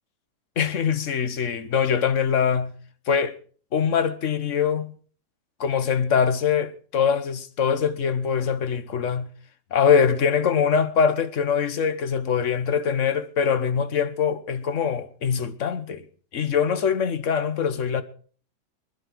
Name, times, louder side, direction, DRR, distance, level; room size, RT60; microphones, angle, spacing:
voice 1, 0.6-2.7 3.1-3.4 3.7-4.9 5.6-9.3 9.7-16.0 16.3-18.0, left 7 dB, 50° left, 1.3 m, -23 dB
20.0 x 12.0 x 4.6 m
omnidirectional pair, 1.9 m